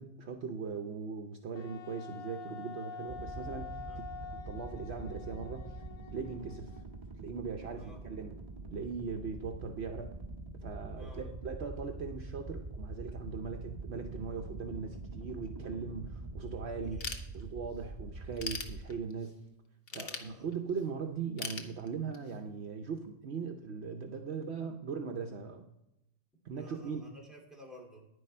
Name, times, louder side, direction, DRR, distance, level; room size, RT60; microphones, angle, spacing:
voice 1, 0.0-5.8 6.1-6.8 7.2-8.3 8.7-10.1 10.6-17.0 17.3-19.4 19.9-25.7 26.4-27.0, right 5 dB, 65° right, 4 dB, 1.0 m, -40 dB
Wind instrument woodwind instrument, 1.6-7.0, left 6 dB, 90° left, 1.1 m, -47 dB
sound 1, 3.1-18.9, right 2 dB, 30° right, 1.5 m, -44 dB
voice 2, 7.7-8.0 11.0-11.3 16.8-17.1 19.9-20.5 26.5-28.1, equal, ahead, -2 dB, 2.6 m, -53 dB
Ratchet pawl / Tools, 17.0-17.8 18.2-19.3 19.9-20.8 21.4-22.4, left 4 dB, 55° left, 1.1 m, -40 dB
10.0 x 10.0 x 4.3 m, 0.86 s
omnidirectional pair, 1.2 m